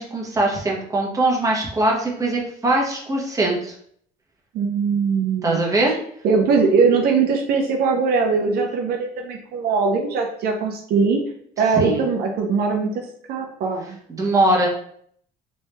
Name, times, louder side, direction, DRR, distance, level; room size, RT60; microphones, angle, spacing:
voice 1, 0.0-3.7 5.4-5.9 11.8-12.0 14.1-14.7, right 2 dB, 20° right, -2 dB, 1.0 m, -21 dB
voice 2, 4.5-5.6 6.2-11.2 11.6-12.9 13.3-14.0, right 5 dB, 65° right, 1 dB, 0.6 m, -21 dB
3.1 x 2.7 x 3.3 m, 0.64 s
cardioid pair, 110°, 17 cm